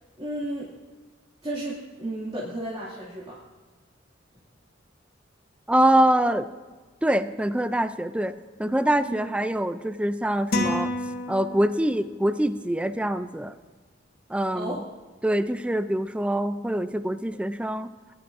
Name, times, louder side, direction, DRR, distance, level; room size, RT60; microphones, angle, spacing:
voice 1, 0.2-0.7 1.4-3.4 9.1-9.2 9.5-9.6 14.5-14.8, right 1 dB, 30° right, -9 dB, 2.3 m, -33 dB
voice 2, 5.7-6.5 7.0-10.9 11.3-13.5 14.3-14.8 15.2-17.9, right 1 dB, 5° right, 12 dB, 0.4 m, -24 dB
sound 1, 10.5-12.0, left 1 dB, 55° left, 1.5 m, -29 dB
20.0 x 11.0 x 2.6 m, 1.3 s
head